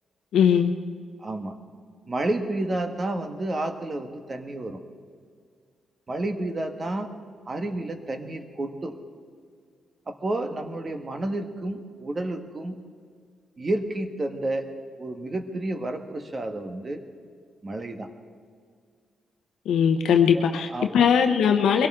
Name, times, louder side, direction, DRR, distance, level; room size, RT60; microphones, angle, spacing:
voice 1, 0.3-0.7 19.7-20.7 20.9-21.9, left 7 dB, 90° left, 4 dB, 0.8 m, -19 dB
voice 2, 1.2-1.6 2.1-4.8 6.1-7.1 7.5-9.0 10.1-12.8 13.6-14.7 15.0-17.0 17.6-18.1 20.3-21.1, right 2 dB, 30° right, 6 dB, 1.3 m, -30 dB
22.5 x 17.0 x 3.7 m, 2.1 s
cardioid pair, 115°, 0 cm